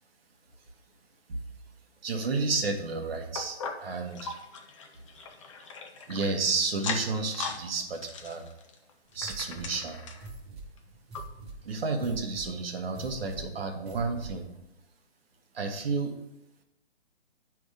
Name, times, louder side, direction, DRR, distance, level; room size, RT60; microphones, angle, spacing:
voice 1, 2.0-4.4 6.1-8.5 9.1-10.0 11.6-14.5 15.5-16.2, right 4 dB, 60° right, 4 dB, 1.3 m, -31 dB
sound 1, 3.3-6.3 6.7-7.6 7.9-10.3 10.8-10.9 11.1-11.2 11.9-12.0, left 5 dB, 30° left, 0.5 m, -39 dB
sound 2, 9.1-14.6, right 2 dB, 25° right, 1.5 m, -45 dB
9.1 x 3.5 x 5.0 m, 0.86 s
hypercardioid pair, 150°, 33 cm